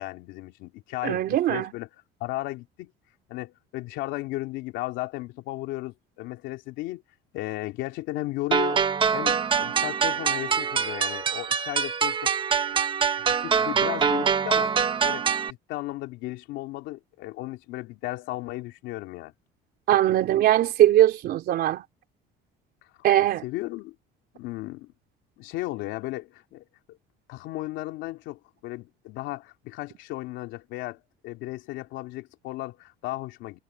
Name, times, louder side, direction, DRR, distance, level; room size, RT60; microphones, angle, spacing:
voice 1, 0.0-1.9 2.2-2.9 3.3-7.0 7.3-8.9 9.1-12.3 13.3-14.7 15.0-19.3 23.4-23.9 24.3-24.9 25.4-27.0 27.3-33.6, left 18 dB, 80° left, 3.0 m, -35 dB
voice 2, 1.0-1.7 19.9-21.8 23.0-23.4, right 12 dB, 55° right, 3.4 m, -21 dB
sound 1, 8.5-15.5, right 6 dB, 25° right, 1.1 m, -24 dB
cardioid pair, 145°, 19 cm